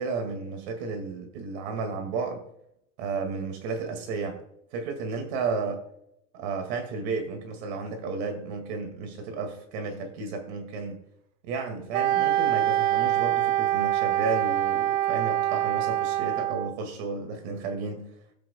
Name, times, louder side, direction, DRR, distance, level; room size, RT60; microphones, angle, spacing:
voice 1, 0.0-2.4 3.0-4.4 4.7-5.8 6.3-11.0 11.4-18.1, right 4 dB, 55° right, 6 dB, 2.3 m, -33 dB
Wind instrument woodwind instrument, 11.9-16.7, right 13 dB, 85° right, 1.1 m, -25 dB
20.5 x 8.5 x 2.3 m, 0.76 s
supercardioid pair, 175°, 38 cm